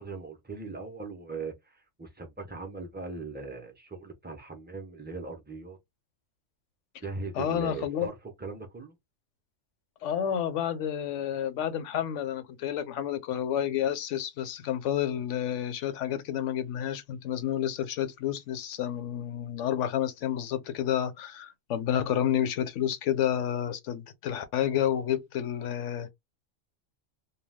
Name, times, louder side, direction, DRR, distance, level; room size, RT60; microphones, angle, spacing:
voice 1, 0.0-5.8 7.0-9.0, right 4 dB, 15° right, 0.4 m, -39 dB
voice 2, 7.3-8.1 10.0-26.1, left 10 dB, 75° left, 0.9 m, -30 dB
2.3 x 2.3 x 3.3 m
omnidirectional pair, 1.3 m